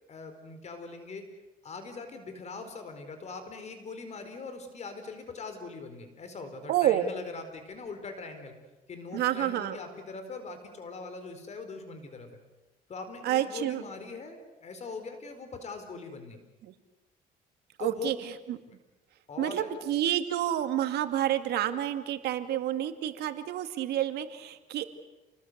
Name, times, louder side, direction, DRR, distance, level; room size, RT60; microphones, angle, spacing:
voice 1, 0.1-1.2 1.6-8.5 8.9-12.3 12.9-16.4 17.8-18.1 19.3-19.7, left 4 dB, 40° left, 8 dB, 4.4 m, -41 dB
voice 2, 6.7-7.1 9.1-9.8 13.2-13.8 16.6-16.7 17.8-18.6 19.4-24.8, right 12 dB, 75° right, 9 dB, 2.2 m, -29 dB
28.5 x 20.5 x 8.1 m, 1.1 s
cardioid pair, 110°, 17 cm